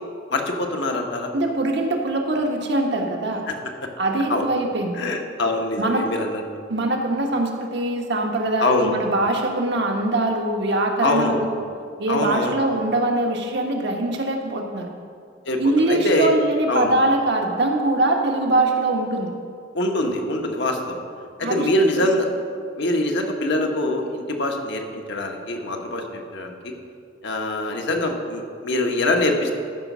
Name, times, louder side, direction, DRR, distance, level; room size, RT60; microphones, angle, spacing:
voice 1, 0.3-1.3 3.5-3.6 4.3-4.4 5.0-6.4 8.6-8.9 11.0-11.4 12.1-12.6 15.4-15.6 15.9-16.4 16.7-16.9 19.7-21.0 21.4-22.3 22.8-26.7 27.2-29.5, left 1 dB, 65° left, 3 dB, 1.2 m, -23 dB
voice 2, 1.3-3.4 4.0-5.0 5.8-6.1 6.7-11.6 12.0-14.9 15.6-19.3 21.4-21.7 22.0-22.1, right 2 dB, 65° right, 2 dB, 1.3 m, -22 dB
13.5 x 5.2 x 6.1 m, 2.3 s
head